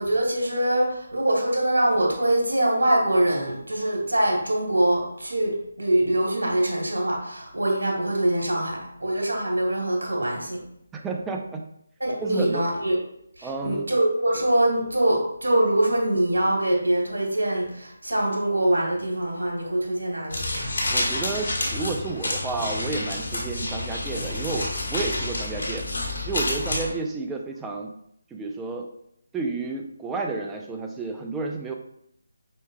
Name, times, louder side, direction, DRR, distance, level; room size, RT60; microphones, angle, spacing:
voice 1, 0.0-10.6 12.0-13.0 13.4-20.4 26.8-26.9, right 1 dB, 80° right, -1 dB, 1.8 m, -23 dB
voice 2, 10.9-11.7 12.2-12.6 13.4-13.9 20.9-25.9 26.2-27.9 28.3-28.9 29.3-31.7, right 3 dB, 10° right, 2 dB, 0.4 m, -31 dB
sound 1, 20.3-26.8, left 2 dB, 70° left, 1.7 m, -29 dB
5.2 x 4.5 x 2.3 m, 0.75 s
figure-of-eight pair, 155°, 0 cm